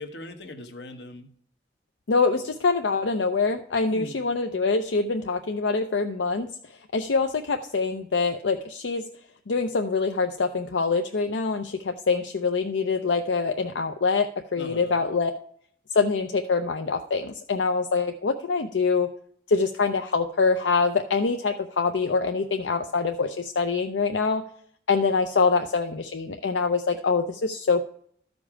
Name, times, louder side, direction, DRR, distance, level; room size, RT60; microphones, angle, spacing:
voice 1, 0.0-1.3 3.9-4.3 14.6-15.0, left 2 dB, 70° left, 7 dB, 1.1 m, -40 dB
voice 2, 2.1-6.5 6.9-9.0 9.5-15.3 15.9-19.1 19.5-24.4 24.9-27.8, left 4 dB, 85° left, 6 dB, 0.6 m, -25 dB
13.0 x 5.3 x 4.9 m, 0.63 s
head